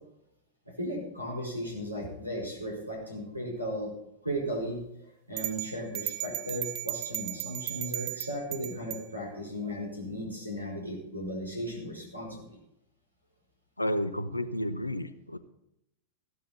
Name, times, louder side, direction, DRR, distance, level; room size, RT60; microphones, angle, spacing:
voice 1, 0.6-3.9 4.2-12.6, equal, 85° right, 0 dB, 4.9 m, -36 dB
sound 1, 5.4-9.1, right 18 dB, 40° right, 0.8 m, -36 dB
voice 2, 13.8-15.4, equal, 85° left, 13 dB, 0.9 m, -31 dB
15.0 x 12.0 x 4.1 m, 0.82 s
figure-of-eight pair, 90°, 0 cm